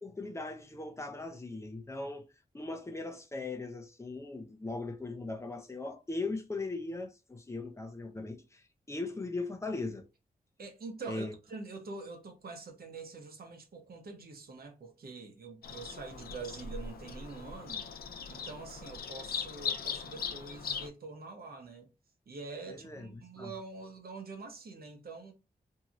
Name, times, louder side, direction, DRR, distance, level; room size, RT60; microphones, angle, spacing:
voice 1, 0.0-2.3 2.5-10.1 11.1-11.3 22.7-23.5, left 3 dB, 20° left, 0.5 m, -39 dB
voice 2, 10.6-17.9 18.3-21.9 22.3-25.3, right 3 dB, 85° right, 0.8 m, -45 dB
Bird vocalization bird call bird song, 15.6-20.9, left 6 dB, 80° left, 0.4 m, -39 dB
2.9 x 2.7 x 2.5 m
wide cardioid pair, 145°, 15 cm